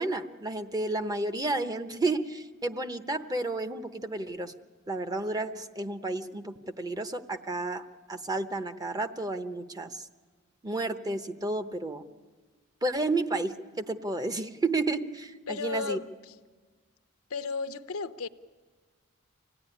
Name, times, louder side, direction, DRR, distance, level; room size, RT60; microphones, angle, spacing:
voice 1, 0.0-4.5 4.9-10.0 10.6-12.0 12.8-16.0, right 2 dB, 20° right, 0.9 m, -31 dB
voice 2, 15.5-16.1 17.3-18.3, left 4 dB, 80° left, 0.8 m, -33 dB
25.5 x 17.0 x 10.0 m
head